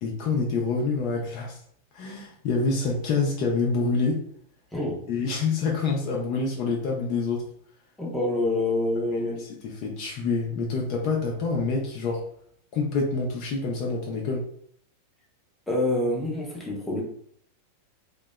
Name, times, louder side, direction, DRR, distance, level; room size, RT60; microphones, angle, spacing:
voice 1, 0.0-1.6 1.9-4.2 5.1-7.4 9.2-9.5 9.8-12.2 12.7-14.4, left 4 dB, 45° left, -1 dB, 0.4 m, -27 dB
voice 2, 8.0-9.4 15.7-17.0, left 2 dB, 5° left, -3 dB, 0.7 m, -26 dB
2.6 x 2.1 x 2.2 m, 0.64 s
figure-of-eight pair, 90°, 0 cm